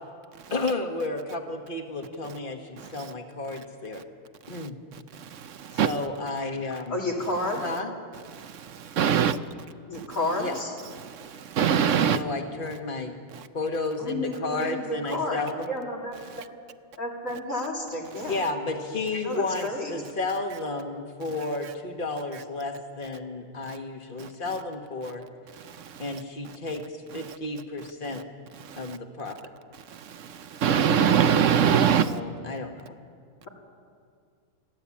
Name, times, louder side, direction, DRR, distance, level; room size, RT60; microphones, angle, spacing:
voice 1, 0.5-4.0 4.5-4.8 5.7-7.0 7.6-7.9 10.4-10.5 12.0-13.2 13.5-15.7 18.3-25.2 26.0-28.2 28.8-29.4 32.0-32.8, left 2 dB, 40° left, 4 dB, 1.8 m, -32 dB
voice 2, 5.2-5.9 8.3-9.4 10.0-10.1 11.0-12.2 24.2-24.3 25.8-26.0 28.7-29.0 29.9-32.2, right 8 dB, 70° right, 12 dB, 1.0 m, -24 dB
voice 3, 6.9-7.6 9.9-10.7 14.0-16.5 17.0-18.4 19.2-19.9, left 1 dB, 75° left, -1 dB, 3.6 m, -31 dB
29.0 x 12.0 x 8.6 m, 2.1 s
omnidirectional pair, 1.4 m